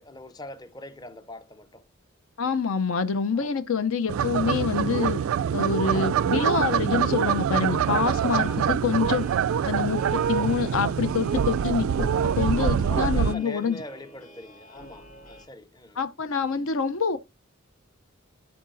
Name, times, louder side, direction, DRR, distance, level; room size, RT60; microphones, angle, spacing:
voice 1, 0.0-1.9 3.3-3.6 8.4-8.6 10.3-10.5 12.8-16.0, left 1 dB, 20° left, 0.6 m, -42 dB
voice 2, 2.4-5.2 5.5-9.3 9.6-13.8 16.0-17.2, left 5 dB, 75° left, 0.6 m, -26 dB
sound 1, 4.1-13.3, right 8 dB, 75° right, 0.3 m, -25 dB
sound 2, 7.7-15.5, equal, 35° left, 3.3 m, -50 dB
11.5 x 4.7 x 2.5 m
head